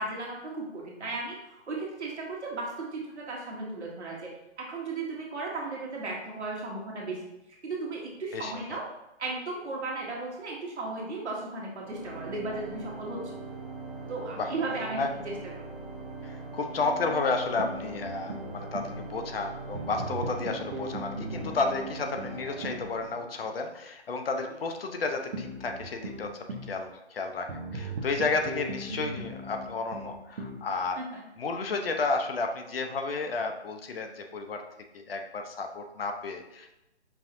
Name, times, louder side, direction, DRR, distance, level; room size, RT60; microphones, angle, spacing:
voice 1, 0.0-1.4 1.7-4.3 4.6-7.2 7.6-8.9 9.2-13.3 14.1-15.7 31.0-31.2, right 3 dB, 75° right, -3 dB, 1.5 m, -35 dB
Organ, 11.8-23.6, right 3 dB, 10° right, 0.6 m, -41 dB
voice 2, 16.2-26.3 26.7-31.0 31.4-34.6 34.9-36.7, left 3 dB, 55° left, 5 dB, 0.6 m, -32 dB
sound 1, 17.6-19.0 19.7-22.9 25.3-26.8 27.5-30.7, right 1 dB, 55° right, 0.7 m, -38 dB
5.5 x 2.7 x 2.6 m, 0.92 s
hypercardioid pair, 155°, 34 cm